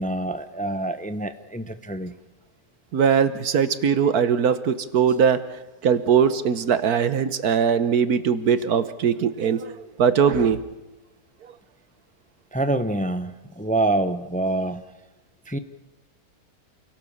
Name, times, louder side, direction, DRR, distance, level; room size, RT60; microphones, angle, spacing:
voice 1, 0.0-2.1 12.5-14.8 15.5-15.6, right 2 dB, 5° left, 10 dB, 0.8 m, -26 dB
voice 2, 2.9-5.4 5.8-9.7 10.0-10.6, right 7 dB, 80° right, 13 dB, 1.6 m, -20 dB
28.5 x 17.5 x 7.3 m, 1.0 s
omnidirectional pair, 1.6 m